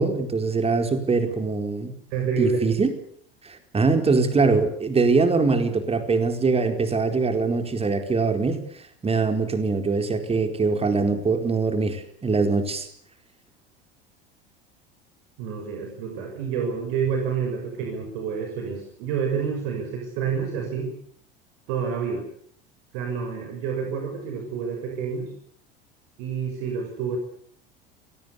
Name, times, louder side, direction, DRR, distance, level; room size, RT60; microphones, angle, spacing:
voice 1, 0.0-1.9 2.4-2.9 3.4-8.6 9.0-12.9, right 4 dB, 20° right, 7 dB, 4.5 m, -23 dB
voice 2, 2.1-2.6 15.4-20.9 21.7-22.2 22.9-25.3 26.2-27.2, right 6 dB, 55° right, 2 dB, 6.7 m, -28 dB
29.5 x 19.0 x 8.4 m, 0.64 s
figure-of-eight pair, 75°, 29 cm